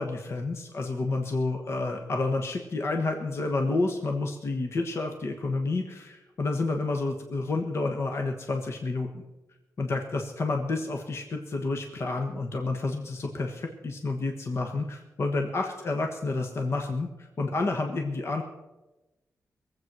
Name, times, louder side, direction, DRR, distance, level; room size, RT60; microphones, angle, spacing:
voice 1, 0.0-9.1 9.8-18.4, left 3 dB, 50° left, 3 dB, 1.4 m, -29 dB
21.5 x 8.0 x 6.2 m, 1.1 s
wide cardioid pair, 115°, 6 cm